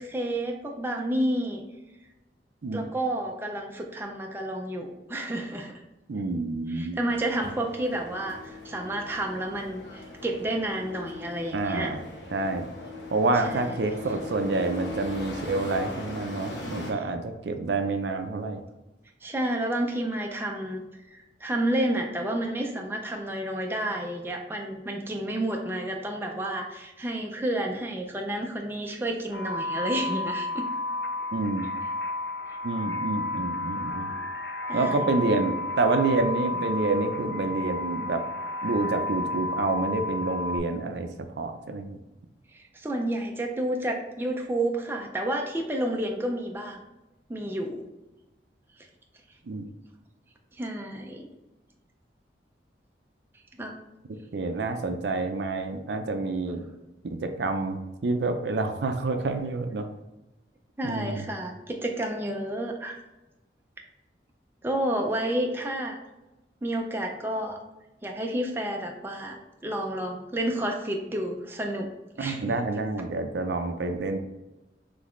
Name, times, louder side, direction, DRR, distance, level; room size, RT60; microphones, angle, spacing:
voice 1, 0.0-1.6 2.7-5.7 6.7-12.0 13.4-13.7 19.2-20.9 21.1-30.5 34.7-35.1 42.5-46.8 47.3-47.8 50.5-51.3 53.6-53.8 60.8-63.0 64.6-66.0 66.6-67.6 68.0-69.4 69.6-71.9 72.1-72.5, right 1 dB, 10° right, 1 dB, 0.4 m, -30 dB
voice 2, 6.1-7.0 11.5-12.0 12.3-12.7 13.1-18.6 31.3-31.7 32.6-34.1 34.7-38.2 38.6-41.1 41.4-42.0 49.4-49.6 54.1-56.7 57.2-59.9 60.8-61.3 72.2-74.2, right 3 dB, 70° right, 7 dB, 0.5 m, -28 dB
sound 1, 7.1-16.9, left 2 dB, 75° left, 1.0 m, -40 dB
sound 2, 29.3-40.6, left 2 dB, 60° left, 0.6 m, -32 dB
4.0 x 3.3 x 3.1 m, 1.0 s
head